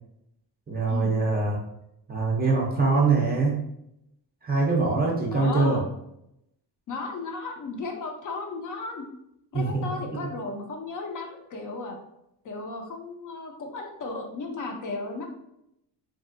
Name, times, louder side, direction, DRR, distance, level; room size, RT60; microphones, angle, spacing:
voice 1, 0.7-1.6 2.1-3.6 4.4-5.8 9.5-9.8, right 3 dB, 25° right, -2 dB, 0.4 m, -23 dB
voice 2, 5.3-5.8 6.9-9.1 9.5-12.0 12.4-15.3, left 3 dB, 50° left, 3 dB, 0.5 m, -35 dB
3.1 x 2.6 x 2.5 m, 0.80 s
cardioid pair, 175°, 43 cm